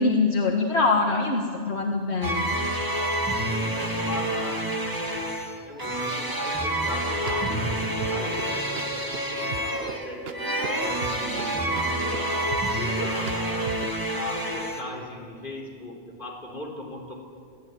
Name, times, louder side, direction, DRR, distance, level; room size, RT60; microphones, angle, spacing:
voice 1, 0.0-2.5 12.7-13.1, left 3 dB, 80° left, 1 dB, 2.0 m, -24 dB
sound 1, 2.2-14.8, right 1 dB, 20° right, 2.2 m, -28 dB
voice 2, 3.5-12.6 12.9-13.7 14.1-17.2, left 2 dB, 50° left, -2 dB, 4.2 m, -39 dB
sound 2, 6.9-13.9, right 7 dB, 65° right, 1.1 m, -39 dB
23.5 x 16.0 x 9.4 m, 2.2 s
omnidirectional pair, 1.1 m